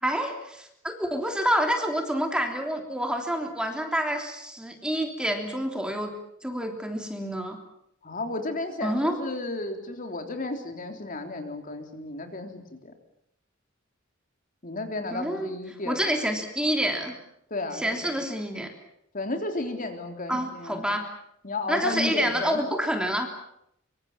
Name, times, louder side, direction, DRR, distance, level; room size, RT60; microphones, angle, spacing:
voice 1, 0.0-6.1 6.4-7.6 8.8-9.2 15.1-15.5 15.8-17.2 17.7-18.7 20.3-21.0 21.7-23.3, equal, 5° right, 3 dB, 3.3 m, -28 dB
voice 2, 8.0-12.9 14.6-16.1 17.5-18.1 19.1-20.9 21.4-22.6, left 2 dB, 40° left, 5 dB, 3.6 m, -33 dB
25.5 x 24.5 x 7.4 m, 0.75 s
head